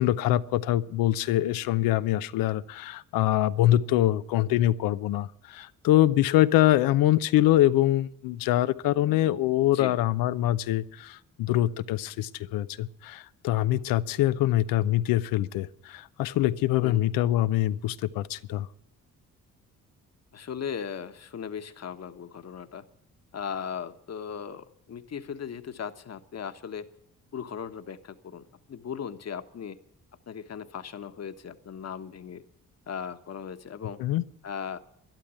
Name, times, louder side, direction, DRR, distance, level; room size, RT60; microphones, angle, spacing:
voice 1, 0.0-18.7 34.0-34.2, left 14 dB, 85° left, 15 dB, 0.7 m, -24 dB
voice 2, 9.6-10.0 16.8-17.0 20.3-22.8 23.3-26.9 27.3-29.8 30.3-32.4 32.9-34.0 34.4-34.8, left 7 dB, 50° left, 9 dB, 1.3 m, -37 dB
12.0 x 11.5 x 8.3 m, 0.78 s
supercardioid pair, 60°, 33 cm